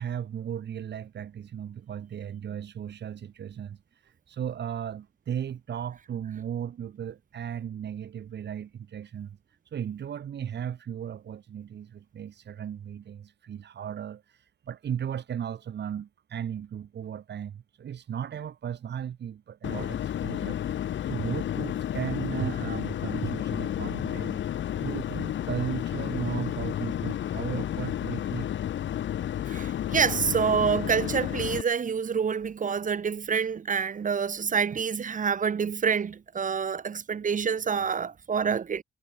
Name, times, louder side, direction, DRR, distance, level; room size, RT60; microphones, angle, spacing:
voice 1, 0.0-9.4 9.7-20.6 21.1-24.4 24.7-28.6, right 9 dB, 60° right, 7.0 m, -36 dB
sound 1, 19.6-31.6, left 11 dB, 70° left, 5.6 m, -31 dB
voice 2, 29.5-38.8, right 6 dB, 40° right, 1.7 m, -27 dB
cardioid pair, 90°, 20 cm